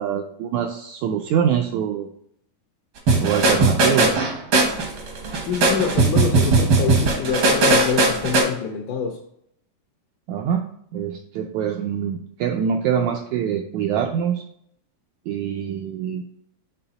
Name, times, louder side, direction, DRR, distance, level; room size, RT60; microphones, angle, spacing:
voice 1, 0.0-2.1 3.2-4.2 10.3-10.6 10.9-14.4 15.3-16.2, right 8 dB, 85° right, 3 dB, 1.6 m, -24 dB
sound 1, 3.1-8.4, right 2 dB, 65° right, 1.1 m, -18 dB
voice 2, 5.5-9.2, left 6 dB, 75° left, 2 dB, 2.0 m, -26 dB
6.9 x 3.5 x 3.9 m, 0.72 s
omnidirectional pair, 3.8 m